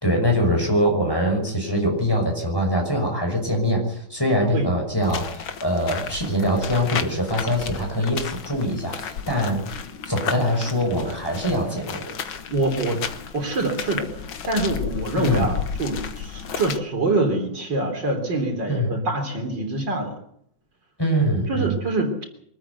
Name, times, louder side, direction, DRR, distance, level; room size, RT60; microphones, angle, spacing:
voice 1, 0.0-9.6 10.0-12.1 15.2-15.5 18.7-19.0 21.0-21.8, equal, 10° left, 1 dB, 6.0 m, -23 dB
sound 1, 5.0-16.8, left 7 dB, 75° left, 2.2 m, -33 dB
voice 2, 12.5-13.0 13.3-20.1 21.5-22.2, right 2 dB, 60° right, 3 dB, 4.2 m, -25 dB
24.0 x 13.5 x 8.2 m, 0.68 s
omnidirectional pair, 2.2 m